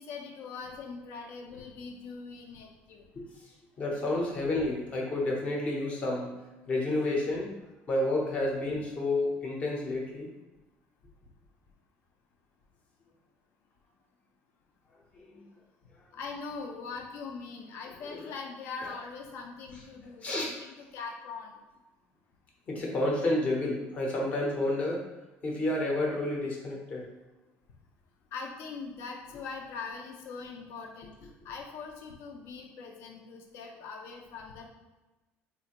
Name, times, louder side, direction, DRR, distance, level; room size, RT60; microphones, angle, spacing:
voice 1, 0.0-3.0 16.1-21.5 28.3-34.7, left 4 dB, 55° left, 2 dB, 0.6 m, -42 dB
voice 2, 3.8-6.3 6.7-7.5 7.9-10.3 15.1-15.4 18.0-18.3 20.2-20.5 22.7-25.0 25.4-27.1, left 2 dB, 25° left, -1 dB, 0.8 m, -30 dB
4.2 x 2.5 x 2.9 m, 1.1 s
cardioid pair, 170°, 5 cm